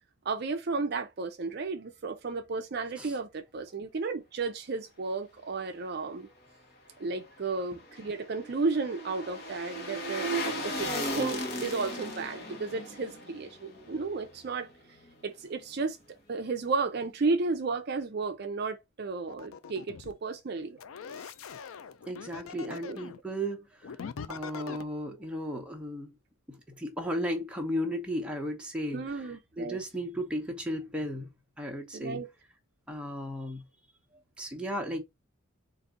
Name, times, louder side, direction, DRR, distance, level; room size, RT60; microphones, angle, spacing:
voice 1, 0.2-6.3 7.0-14.7 15.2-16.0 16.3-20.8 21.2-21.3 22.7-23.0 28.9-29.8 31.9-32.3, right 4 dB, 50° right, 0.5 m, -33 dB
sound 1, 7.5-14.7 15.0-15.1, equal, 45° left, 1.2 m, -36 dB
sound 2, 19.3-20.1 20.8-23.2 23.8-24.8, left 6 dB, 80° left, 0.4 m, -42 dB
voice 2, 22.1-24.0 24.3-26.2 26.5-31.3 31.6-32.2 32.9-33.6 34.4-35.0, equal, 5° right, 0.8 m, -35 dB
4.0 x 2.6 x 3.6 m
head